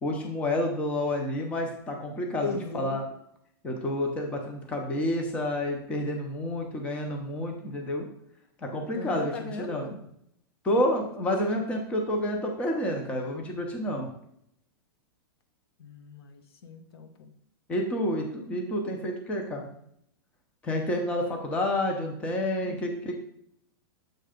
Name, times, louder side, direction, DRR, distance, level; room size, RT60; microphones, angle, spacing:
voice 1, 0.0-3.0 3.6-8.1 8.6-9.9 10.6-14.1 17.7-19.7 20.6-23.2, left 1 dB, 10° left, 2 dB, 0.6 m, -29 dB
voice 2, 2.4-3.0 8.8-10.0 15.8-17.3 22.6-22.8, left 4 dB, 85° left, 6 dB, 1.2 m, -39 dB
7.6 x 3.3 x 5.0 m, 0.73 s
supercardioid pair, 175°, 13 cm